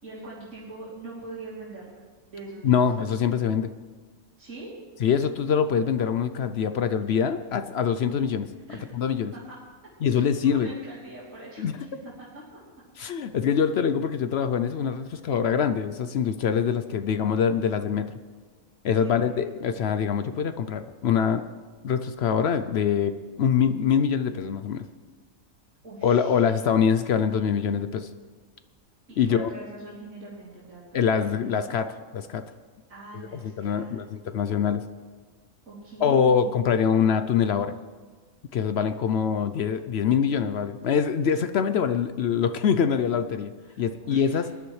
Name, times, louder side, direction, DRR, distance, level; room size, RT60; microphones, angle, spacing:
voice 1, 0.0-2.0 2.3-2.8 4.4-4.7 8.5-8.9 9.3-9.6 10.1-12.6 19.0-19.5 25.8-26.5 29.1-31.8 32.9-34.0 35.6-36.6 43.7-44.5, right 2 dB, 80° right, -9 dB, 3.4 m, -42 dB
voice 2, 2.6-3.7 5.0-8.5 8.9-9.3 10.0-10.7 11.6-11.8 13.0-18.2 18.8-21.4 21.8-24.8 26.0-28.1 29.2-29.5 30.9-31.9 32.1-32.4 33.4-34.8 36.0-37.7 38.5-43.5 43.8-44.5, left 7 dB, 65° left, 10 dB, 0.7 m, -24 dB
20.0 x 11.5 x 3.2 m, 1.5 s
omnidirectional pair, 1.4 m